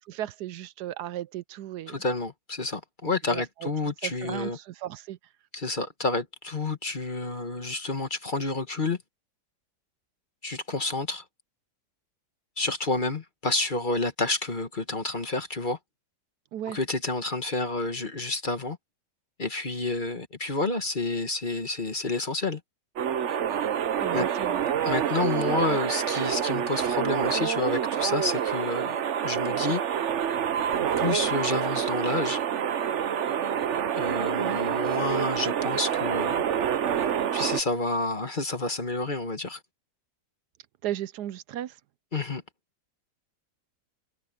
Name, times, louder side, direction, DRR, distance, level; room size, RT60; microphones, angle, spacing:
voice 1, 0.1-1.9 3.2-3.7 4.0-5.2 16.5-16.8 24.0-24.6 34.4-34.6 40.8-41.8, right 12 dB, 80° right, 1.2 m, -35 dB
voice 2, 1.9-4.6 5.5-9.0 10.4-11.2 12.6-15.8 16.7-18.8 19.4-22.6 24.1-24.3 24.8-29.0 29.2-29.8 31.0-32.4 33.9-36.4 37.3-39.6 42.1-42.4, left 3 dB, 30° left, 1.5 m, -29 dB
sound 1, 23.0-37.6, right 9 dB, 55° right, 1.0 m, -27 dB
omnidirectional pair, 1.8 m